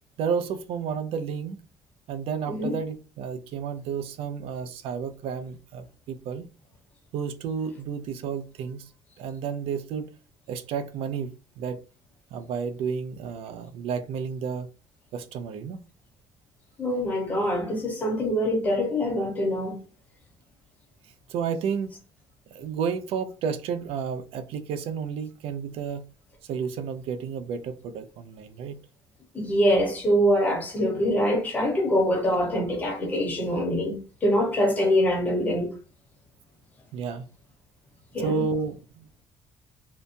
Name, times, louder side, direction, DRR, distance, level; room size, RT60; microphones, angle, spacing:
voice 1, 0.2-1.6 2.1-6.5 7.1-8.9 9.2-10.1 10.5-11.8 12.3-14.7 15.1-15.8 21.3-21.9 22.5-26.0 26.4-28.8 31.0-31.1 36.9-37.3 38.2-39.1, right 6 dB, 60° right, 0.4 m, -31 dB
voice 2, 16.8-19.8 29.3-35.7 38.1-38.4, equal, 15° left, 0.8 m, -24 dB
2.8 x 2.1 x 2.5 m
cardioid pair, 170°, 11 cm